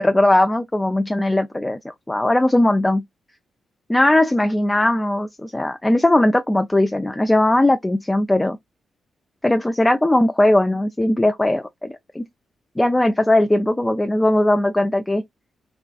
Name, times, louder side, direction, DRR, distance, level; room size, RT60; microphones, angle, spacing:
voice 1, 0.0-3.0 3.9-8.6 9.4-12.2 12.8-15.2, left 1 dB, 15° left, 0.3 m, -19 dB
2.3 x 2.3 x 2.3 m
supercardioid pair, 60°, 0 cm